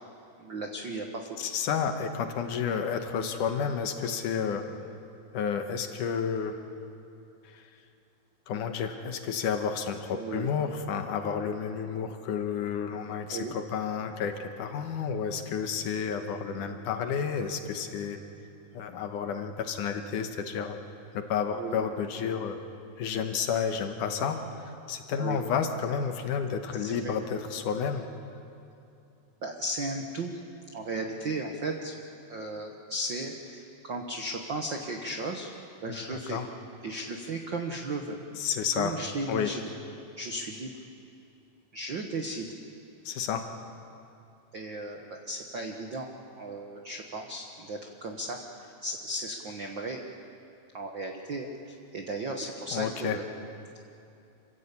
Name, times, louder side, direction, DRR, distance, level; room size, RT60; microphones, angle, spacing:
voice 1, 0.4-1.4 10.1-10.5 13.3-13.5 21.5-21.8 25.2-25.4 26.8-27.1 29.4-30.3 30.7-32.0 32.3-35.5 35.8-36.4 36.8-38.2 38.7-39.7 40.2-40.7 41.7-42.5 44.5-46.1 46.4-50.0 50.7-53.2, right 2 dB, 70° right, 3 dB, 1.1 m, -35 dB
voice 2, 1.4-4.7 5.3-6.6 7.4-7.6 8.5-18.2 18.7-20.8 21.1-22.6 23.0-28.1 35.9-36.5 38.4-39.0 39.3-39.5 43.1-43.5 52.7-53.2, left 7 dB, 70° left, 6 dB, 2.4 m, -31 dB
27.5 x 15.5 x 8.4 m, 2.7 s
omnidirectional pair, 4.1 m